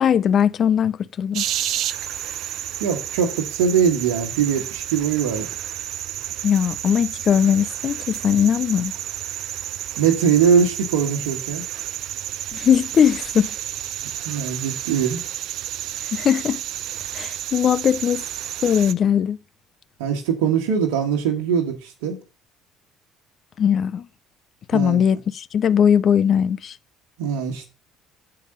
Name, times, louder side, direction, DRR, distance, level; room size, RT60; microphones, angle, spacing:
voice 1, 0.0-1.4 6.4-8.9 12.5-13.6 16.1-16.6 17.1-18.3 18.6-19.4 23.6-24.1 24.7-26.8, left 8 dB, 50° left, 0.5 m, -19 dB
sound 1, 1.3-18.9, right 11 dB, 65° right, 0.5 m, -31 dB
voice 2, 2.8-5.5 10.0-11.6 14.2-15.2 20.0-22.2 24.7-25.0 27.2-27.7, right 7 dB, 80° right, 1.3 m, -21 dB
6.8 x 4.9 x 6.5 m
hypercardioid pair, 60°, 0 cm